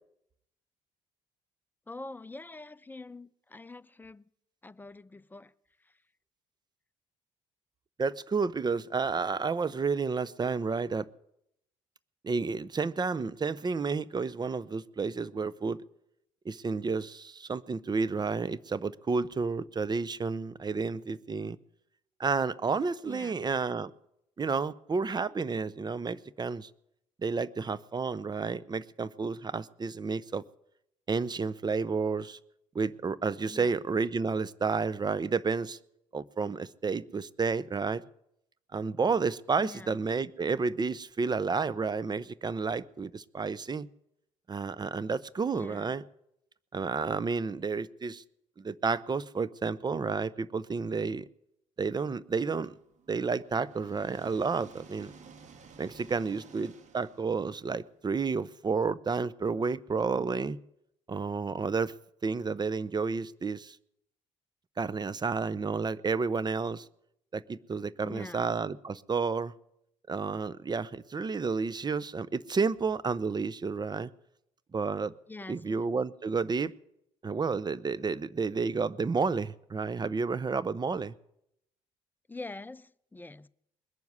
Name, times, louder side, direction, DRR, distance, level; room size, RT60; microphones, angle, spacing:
voice 1, 1.9-4.3 4.6-5.5 5.8-6.0 23.1-23.4 33.5-33.8 39.6-39.9 45.5-45.9 68.0-68.5 75.3-75.9 82.3-83.5, left 2 dB, 10° left, 0.7 m, -45 dB
voice 2, 8.0-11.1 12.2-15.8 16.4-21.6 22.2-23.9 24.4-26.7 27.2-30.4 31.1-32.4 32.7-35.8 36.1-38.0 38.7-43.9 44.5-46.0 46.7-48.2 48.6-51.3 51.8-52.8 53.1-55.1 55.8-60.6 61.1-61.9 62.2-63.8 64.8-66.9 67.3-69.5 70.1-74.1 74.7-75.1 75.5-76.7 77.2-81.1, right 4 dB, 30° right, 0.7 m, -31 dB
sound 1, 52.6-58.5, right 5 dB, 55° right, 1.7 m, -54 dB
21.0 x 7.1 x 9.6 m
hypercardioid pair, 60°, 15 cm